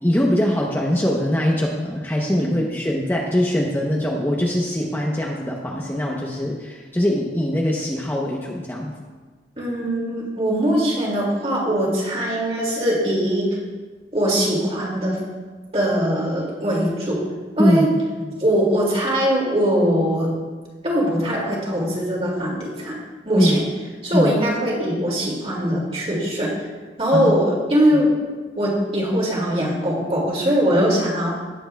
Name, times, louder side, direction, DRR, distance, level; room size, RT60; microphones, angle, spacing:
voice 1, 0.0-8.9 17.6-17.9 18.2-18.4 23.4-23.6 24.1-24.4 27.1-27.3, equal, 10° left, -2 dB, 0.8 m, -22 dB
voice 2, 9.6-13.5 14.1-15.2 15.7-17.2 17.6-17.9 18.4-20.3 20.8-23.0 23.2-23.6 24.0-26.5 27.0-28.1 28.5-31.3, equal, 35° right, -3 dB, 2.3 m, -21 dB
18.0 x 7.8 x 2.3 m, 1.4 s
head